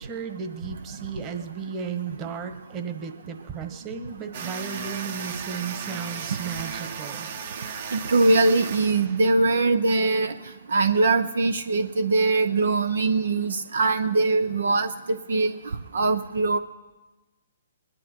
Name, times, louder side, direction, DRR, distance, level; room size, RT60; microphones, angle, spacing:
voice 1, 0.0-7.3, right 6 dB, 25° right, 6 dB, 1.4 m, -34 dB
sound 1, 4.3-9.5, right 6 dB, 55° right, 1.4 m, -35 dB
voice 2, 7.9-10.3 10.7-15.6 15.9-16.6, right 3 dB, 75° right, 10 dB, 0.7 m, -22 dB
21.5 x 10.5 x 4.5 m, 1.1 s
hypercardioid pair, 135°, 0 cm